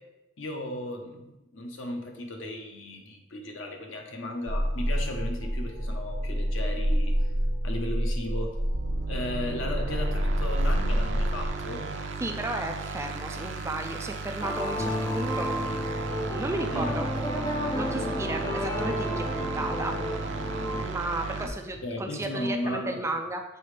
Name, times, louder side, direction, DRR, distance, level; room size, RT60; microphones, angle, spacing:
voice 1, 0.4-7.1 7.6-8.6 9.1-11.9 16.7-16.9 21.4-21.5 21.8-23.0, left 1 dB, 75° left, 3 dB, 0.9 m, -35 dB
sound 1, 4.5-11.5, equal, 80° right, 1.2 m, -28 dB
sound 2, 8.7-21.5, right 4 dB, 65° right, 0.6 m, -36 dB
voice 2, 12.2-15.8 16.3-17.1 17.7-20.0 20.8-23.4, right 2 dB, 15° right, 4 dB, 0.3 m, -34 dB
sound 3, 14.4-20.8, equal, 20° left, 0.7 m, -31 dB
6.9 x 4.1 x 3.3 m, 0.98 s
head